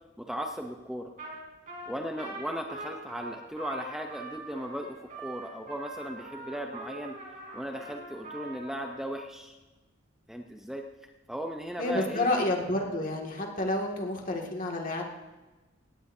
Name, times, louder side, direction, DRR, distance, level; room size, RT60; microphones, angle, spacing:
voice 1, 0.2-1.1 1.9-7.2 7.5-9.5 10.3-10.9 11.3-12.3, equal, ahead, 2 dB, 0.7 m, -37 dB
Trumpet, 1.2-1.4 1.7-9.0, right 2 dB, 45° right, 3.6 m, -43 dB
voice 2, 11.8-15.0, left 2 dB, 45° left, 0 dB, 2.1 m, -29 dB
18.0 x 16.5 x 2.7 m, 1.2 s
head